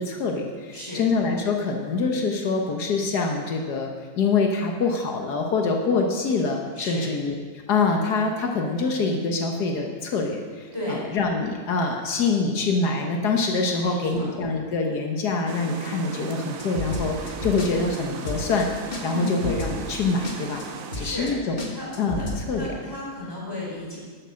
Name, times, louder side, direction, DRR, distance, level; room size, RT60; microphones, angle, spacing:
voice 1, 0.0-7.4 7.7-18.7 19.0-20.6 21.0-21.6 22.0-22.7, left 4 dB, 85° left, 2 dB, 1.7 m, -25 dB
voice 2, 0.7-1.0 6.8-7.1 10.7-11.0 13.8-14.3 19.1-19.3 20.9-21.3 21.7-21.9 22.2-22.3 22.5-24.0, left 1 dB, 15° left, -5 dB, 4.6 m, -34 dB
sound 1, 15.5-21.3, right 5 dB, 60° right, 1.2 m, -37 dB
sound 2, 16.6-17.7 17.9-18.0 18.2-18.6 18.9-19.0 19.3-20.0 20.2-20.3 20.6-20.7 20.9-21.3 21.6-22.4, left 2 dB, 35° left, 1.7 m, -32 dB
11.5 x 9.7 x 6.4 m, 1.5 s
omnidirectional pair, 1.7 m